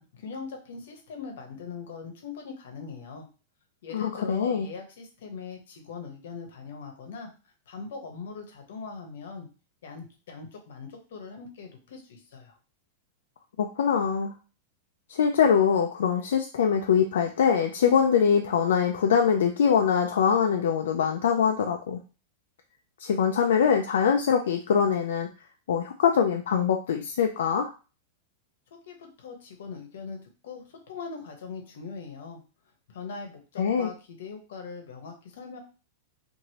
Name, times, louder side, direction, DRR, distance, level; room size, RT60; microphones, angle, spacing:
voice 1, 0.0-3.3 3.8-7.3 7.7-9.5 9.8-12.5 28.7-30.2 30.4-32.4 32.9-35.6, left 5 dB, 70° left, 3 dB, 0.9 m, -41 dB
voice 2, 3.9-4.7 13.6-14.3 15.1-22.0 23.0-25.3 25.7-27.7 33.6-33.9, left 7 dB, 90° left, 4 dB, 0.3 m, -23 dB
3.0 x 2.6 x 2.8 m, 0.34 s
supercardioid pair, 175°, 0 cm